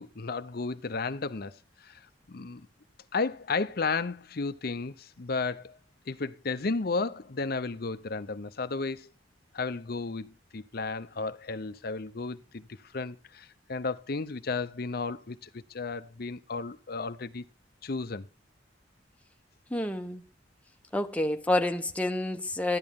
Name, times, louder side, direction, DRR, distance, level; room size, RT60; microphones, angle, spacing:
voice 1, 0.0-2.7 3.1-5.8 6.1-9.1 9.5-12.6 12.9-17.4 17.8-18.3, left 4 dB, 55° left, 0.7 m, -33 dB
voice 2, 19.7-20.2 20.9-22.8, left 1 dB, 10° left, 1.0 m, -28 dB
13.5 x 10.5 x 3.7 m
head